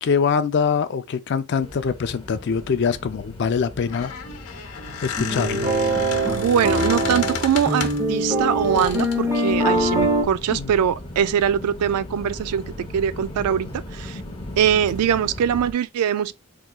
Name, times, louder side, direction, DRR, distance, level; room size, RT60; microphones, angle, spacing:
voice 1, 0.0-4.1 5.0-5.7 10.5-10.7, left 6 dB, 50° left, 0.4 m, -23 dB
sound 1, 1.6-15.7, left 1 dB, 25° left, 0.7 m, -38 dB
Squeak, 3.7-8.1 8.7-9.3, left 6 dB, 80° left, 0.8 m, -32 dB
sound 2, 5.2-10.2, right 1 dB, 15° right, 0.8 m, -23 dB
voice 2, 6.3-14.2 14.6-16.3, right 8 dB, 90° right, 0.3 m, -22 dB
3.6 x 2.9 x 2.3 m
head